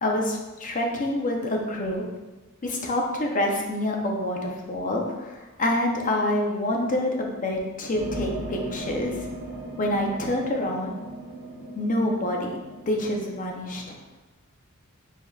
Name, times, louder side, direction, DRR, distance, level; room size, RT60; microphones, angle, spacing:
voice 1, 0.0-2.0 2.6-9.2 9.8-10.9 11.7-12.6 12.9-14.0, left 1 dB, 35° left, 1 dB, 0.6 m, -27 dB
sound 1, 7.9-13.4, right 1 dB, 45° right, 0.9 m, -37 dB
6.7 x 2.8 x 2.3 m, 1.1 s
head